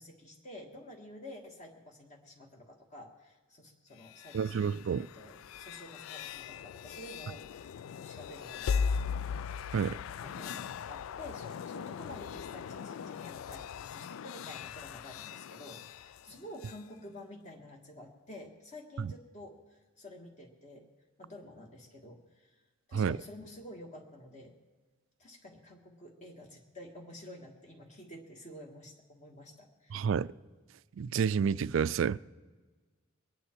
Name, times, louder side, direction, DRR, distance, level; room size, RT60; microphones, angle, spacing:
voice 1, 0.0-4.7 5.0-8.7 10.2-20.9 21.2-22.5 22.9-24.5 25.2-30.0, left 1 dB, 35° left, 1.7 m, -50 dB
sound 1, 4.0-16.8, left 6 dB, 80° left, 0.3 m, -39 dB
voice 2, 4.3-5.1 9.7-10.0 19.0-19.1 22.9-23.2 29.9-30.3 31.0-32.2, right 6 dB, 65° right, 0.4 m, -29 dB
23.0 x 9.8 x 4.5 m
head